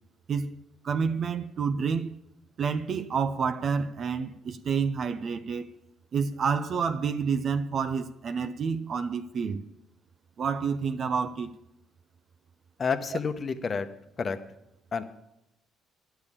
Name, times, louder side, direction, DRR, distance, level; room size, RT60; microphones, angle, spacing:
voice 1, 0.8-2.1 2.6-5.7 6.1-9.6 10.4-11.5, right 6 dB, 55° right, 0.6 m, -29 dB
voice 2, 12.8-13.9 14.2-14.4 14.9-15.0, left 5 dB, 40° left, 0.9 m, -29 dB
10.5 x 6.9 x 8.6 m
supercardioid pair, 70°, 0 cm